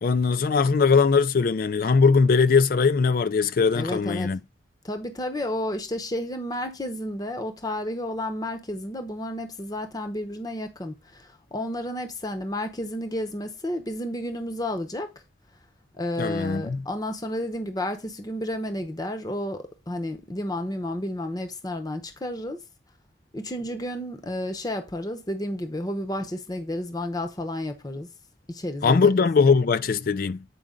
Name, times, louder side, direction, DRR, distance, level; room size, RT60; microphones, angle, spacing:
voice 1, 0.0-4.4 16.2-16.8 28.8-30.4, left 5 dB, 55° left, 0.4 m, -20 dB
voice 2, 3.7-4.3 4.8-15.1 16.0-22.6 23.3-28.1 28.5-29.2, left 1 dB, 20° left, 0.8 m, -31 dB
8.4 x 4.9 x 3.8 m
head